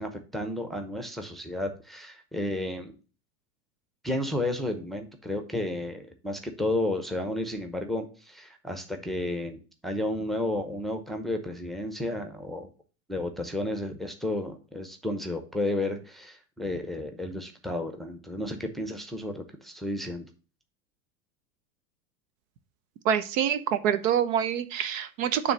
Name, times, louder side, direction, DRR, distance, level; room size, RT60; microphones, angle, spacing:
voice 1, 0.0-2.9 4.0-12.7 13.1-20.3, left 1 dB, ahead, 5 dB, 0.8 m, -32 dB
voice 2, 23.0-25.5, right 9 dB, 60° right, 12 dB, 0.8 m, -26 dB
7.0 x 3.3 x 6.1 m, 0.35 s
hypercardioid pair, 115°, 46 cm